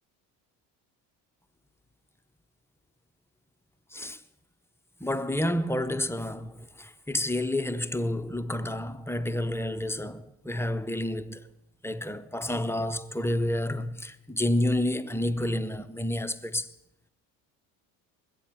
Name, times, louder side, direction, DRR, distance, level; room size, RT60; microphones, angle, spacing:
voice 1, 5.0-11.5 11.8-16.7, left 1 dB, 5° left, 0.5 m, -29 dB
21.0 x 8.5 x 4.4 m
hypercardioid pair, 65°, 46 cm